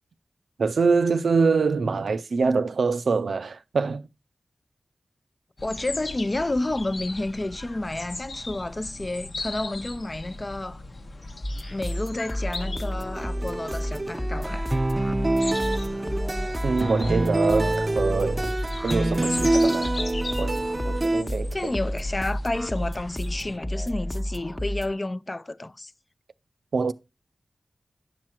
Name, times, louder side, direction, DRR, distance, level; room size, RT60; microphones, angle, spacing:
voice 1, 0.6-4.1 16.6-18.5 18.8-19.9 20.4-21.7 26.7-26.9, right 4 dB, 85° right, 0.5 m, -25 dB
sound 1, 5.6-23.6, left 2 dB, 65° left, 0.9 m, -38 dB
voice 2, 5.6-10.8 11.7-14.7 21.5-25.9, left 2 dB, 35° left, 0.5 m, -30 dB
sound 2, 11.4-24.9, equal, 15° left, 0.9 m, -31 dB
sound 3, 13.2-21.2, right 2 dB, 35° right, 0.5 m, -26 dB
9.8 x 6.0 x 4.5 m
cardioid pair, 50°, 0 cm